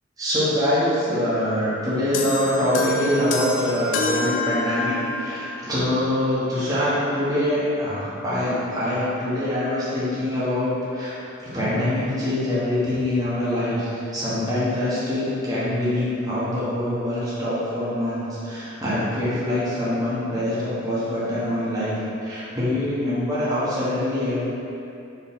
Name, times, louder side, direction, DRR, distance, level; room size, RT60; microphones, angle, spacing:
voice 1, 0.2-11.2 11.4-24.4, left 1 dB, 20° right, -11 dB, 1.0 m, -24 dB
sound 1, 2.1-5.3, left 2 dB, 75° left, 0.4 m, -27 dB
4.4 x 3.0 x 3.6 m, 2.8 s
head